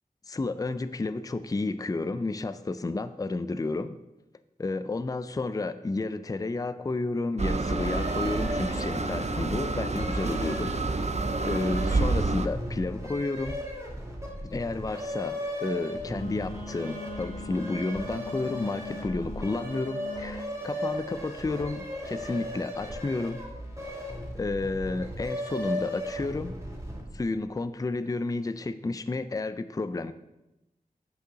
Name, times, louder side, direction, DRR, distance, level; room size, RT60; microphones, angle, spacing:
voice 1, 0.3-3.9 4.6-10.7 11.4-13.6 14.4-23.4 24.3-26.6 27.1-30.1, left 3 dB, 25° left, 12 dB, 0.4 m, -31 dB
sound 1, 7.4-12.5, right 3 dB, 50° right, 0.6 m, -28 dB
sound 2, 7.8-27.2, equal, 20° right, 2.3 m, -37 dB
Wind instrument woodwind instrument, 16.0-20.4, left 2 dB, 80° right, 2.6 m, -41 dB
6.4 x 5.2 x 6.8 m, 0.96 s
wide cardioid pair, 75°, 15 cm